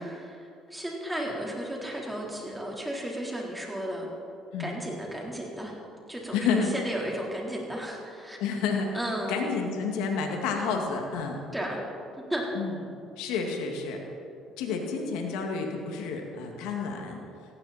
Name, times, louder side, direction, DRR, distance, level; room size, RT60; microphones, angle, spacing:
voice 1, 0.0-4.1 4.6-5.8 6.1-8.4 8.9-9.4 11.5-11.8 12.3-12.4, right 1 dB, 10° right, -2 dB, 4.0 m, -34 dB
voice 2, 6.3-6.7 8.4-8.9 9.3-11.4 12.5-12.7 13.2-14.0 14.6-17.2, left 5 dB, 85° left, 2 dB, 2.2 m, -30 dB
18.0 x 15.0 x 4.4 m, 2.6 s
supercardioid pair, 85°, 0 cm